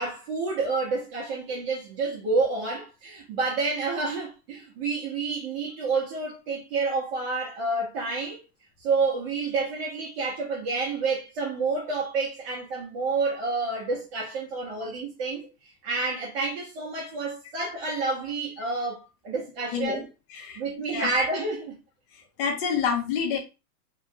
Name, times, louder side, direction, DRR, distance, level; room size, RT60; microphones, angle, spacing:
voice 1, 0.0-8.4 8.8-15.4 15.8-20.1 20.6-21.8, right 3 dB, 45° right, 1.2 m, -29 dB
voice 2, 19.7-20.0 20.3-20.6 20.9-21.1 22.4-23.4, left 6 dB, 35° left, 0.8 m, -27 dB
3.5 x 2.3 x 2.8 m
supercardioid pair, 160°, 44 cm